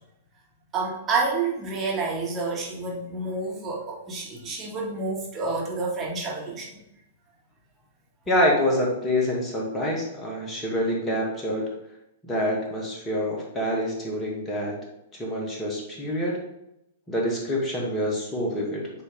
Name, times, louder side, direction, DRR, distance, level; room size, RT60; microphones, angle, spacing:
voice 1, 0.7-6.8, right 3 dB, 25° right, -3 dB, 2.1 m, -29 dB
voice 2, 8.3-11.7 12.2-14.8 15.2-16.4 17.1-18.9, left 1 dB, 15° left, -2 dB, 2.1 m, -26 dB
8.8 x 3.4 x 3.7 m, 0.85 s
figure-of-eight pair, 105°, 0 cm